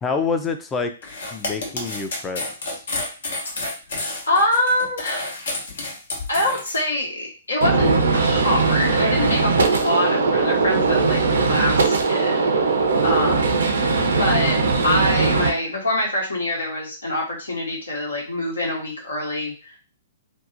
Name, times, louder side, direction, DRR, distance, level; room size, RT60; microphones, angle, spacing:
voice 1, 0.0-2.8, left 4 dB, 15° left, 5 dB, 0.4 m, -27 dB
sound 1, 1.0-6.8, left 2 dB, 65° left, 0.8 m, -30 dB
voice 2, 4.3-5.4 6.3-12.5 13.0-13.6 14.1-19.8, left 1 dB, 85° left, -3 dB, 1.1 m, -25 dB
Gunshot gunfire, 7.6-15.5, right 4 dB, 70° right, 0.5 m, -19 dB
2.7 x 2.0 x 2.5 m, 0.36 s
figure-of-eight pair, 120°, 0 cm